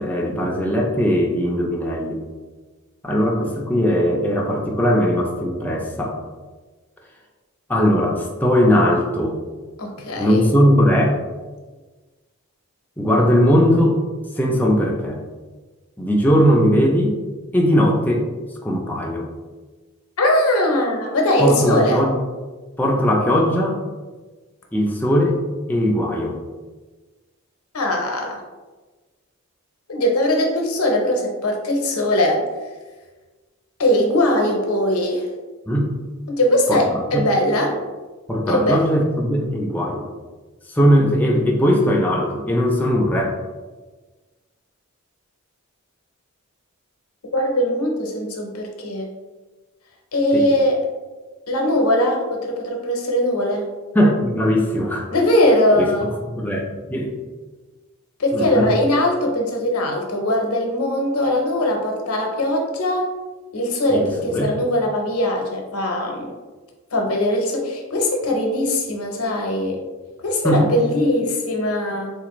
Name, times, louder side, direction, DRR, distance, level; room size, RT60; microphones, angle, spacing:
voice 1, 0.0-2.2 3.0-6.2 7.7-9.4 10.2-11.2 13.0-14.0 14.4-15.2 16.0-17.2 17.5-18.3 18.6-19.3 21.4-22.2 22.8-23.8 24.7-25.4 25.7-26.4 35.7-36.0 36.7-36.8 37.1-37.3 38.3-40.1 40.7-43.4 50.3-50.4 53.9-55.1 55.8-55.9 56.3-56.6 56.9-57.1 58.3-58.7 63.9-64.5 70.4-70.6, equal, 10° left, -1 dB, 0.4 m, -19 dB
voice 2, 9.8-10.4 20.2-22.0 27.7-28.4 29.9-32.4 33.8-35.3 36.3-37.8 38.5-38.8 47.3-49.1 50.1-50.8 51.5-53.7 55.1-56.1 58.2-63.1 63.5-66.3 66.9-69.8 70.2-72.1, left 1 dB, 80° left, 1 dB, 0.7 m, -20 dB
3.7 x 2.5 x 3.0 m, 1.3 s
head